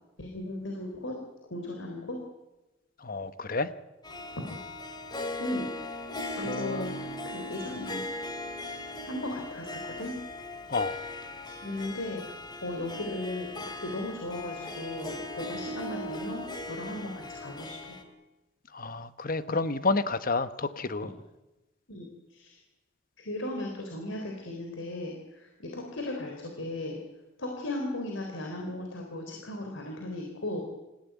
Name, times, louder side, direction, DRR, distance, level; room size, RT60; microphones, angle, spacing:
voice 1, 0.2-1.2 1.5-2.2 5.4-5.7 6.3-6.9 7.3-8.0 9.1-10.2 11.6-17.9 21.9-22.1 22.3-22.6 23.2-27.0 27.4-30.6, left 1 dB, 85° left, 2 dB, 3.9 m, -36 dB
voice 2, 3.0-3.7 6.4-7.3 10.7-11.0 18.7-21.1, left 3 dB, 45° left, 12 dB, 1.1 m, -30 dB
Harp, 4.0-18.0, left 1 dB, 25° left, 2.6 m, -39 dB
26.5 x 16.0 x 9.4 m, 1.0 s
head